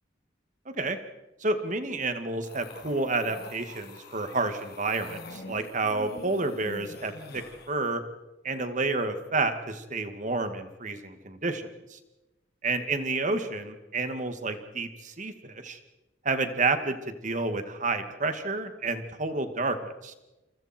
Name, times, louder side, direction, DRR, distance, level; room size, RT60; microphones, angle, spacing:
voice 1, 0.7-1.0 1.4-8.0 8.4-12.0 12.6-15.8 16.2-19.8 20.0-20.1, right 3 dB, 45° right, 8 dB, 2.2 m, -30 dB
sound 1, 2.4-7.7, left 2 dB, 55° left, 2.9 m, -45 dB
29.0 x 28.0 x 4.5 m, 1.0 s
head